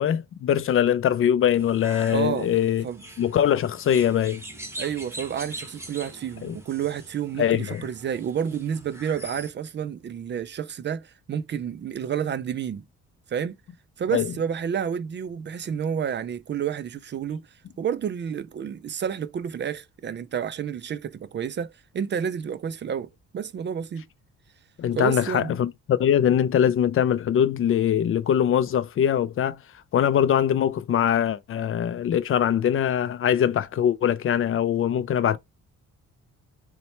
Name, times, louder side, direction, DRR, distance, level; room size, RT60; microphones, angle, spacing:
voice 1, 0.0-2.8 3.2-4.4 6.4-6.6 7.4-7.8 14.1-14.3 24.8-29.6 29.9-35.4, left 9 dB, 45° left, 0.4 m, -22 dB
sound 1, 1.6-9.5, right 1 dB, 10° right, 1.1 m, -42 dB
voice 2, 2.1-2.5 2.8-3.0 4.8-12.8 13.3-13.6 14.0-17.4 17.8-24.0 25.0-25.5, right 8 dB, 40° right, 0.4 m, -30 dB
4.0 x 2.2 x 4.3 m
cardioid pair, 90°, 30 cm